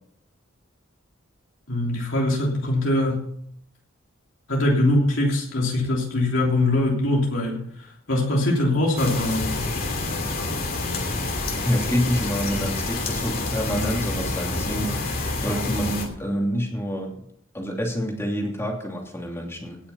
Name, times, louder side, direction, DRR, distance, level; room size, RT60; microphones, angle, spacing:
voice 1, 1.7-3.3 4.5-9.6, left 1 dB, 70° left, -2 dB, 3.2 m, -22 dB
sound 1, 9.0-16.1, left 2 dB, 45° left, 2.8 m, -28 dB
voice 2, 11.6-17.1 17.5-19.8, equal, 15° left, 0 dB, 2.8 m, -27 dB
17.5 x 7.0 x 5.7 m, 0.68 s
head